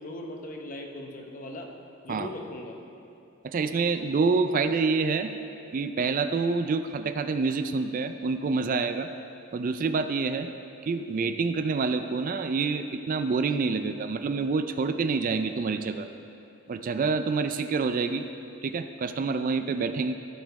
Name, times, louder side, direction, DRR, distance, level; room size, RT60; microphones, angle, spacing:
voice 1, 0.0-1.7 2.0-2.8, left 1 dB, 40° left, 2 dB, 0.9 m, -39 dB
voice 2, 3.4-5.3 5.7-9.1 9.5-10.5 10.8-16.1 16.7-18.2 18.6-20.1, right 4 dB, 40° right, 9 dB, 0.3 m, -27 dB
14.5 x 5.1 x 4.6 m, 2.7 s
head